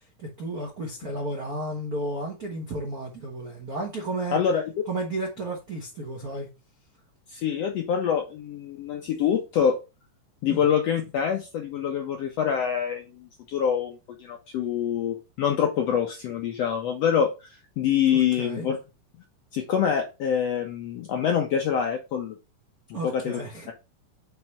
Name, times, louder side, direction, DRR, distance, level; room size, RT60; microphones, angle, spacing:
voice 1, 0.2-4.4 4.9-6.5 10.5-10.6 18.1-18.7 22.9-23.7, right 1 dB, 70° right, 0.8 m, -33 dB
voice 2, 4.3-4.6 7.3-9.8 10.4-17.5 17.8-18.8 19.5-22.4 22.9-23.4, left 8 dB, 75° left, 1.5 m, -25 dB
5.8 x 3.2 x 5.6 m
omnidirectional pair, 3.8 m